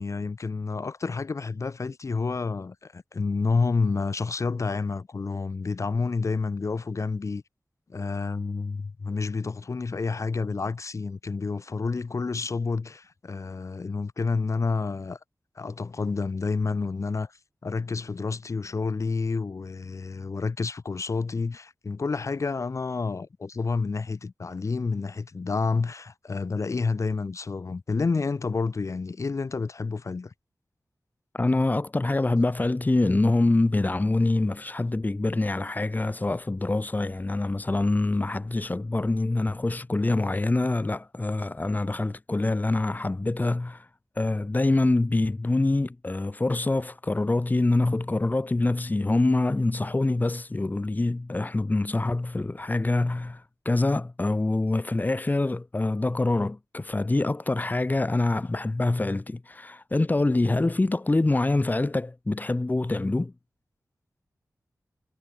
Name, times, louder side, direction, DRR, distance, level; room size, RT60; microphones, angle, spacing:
voice 1, 0.0-7.4 7.9-15.2 15.5-30.3, left 4 dB, 55° left, 6.6 m, -29 dB
voice 2, 31.3-43.9 44.2-63.3, left 2 dB, 30° left, 7.6 m, -25 dB
wide cardioid pair, 110°, 6 cm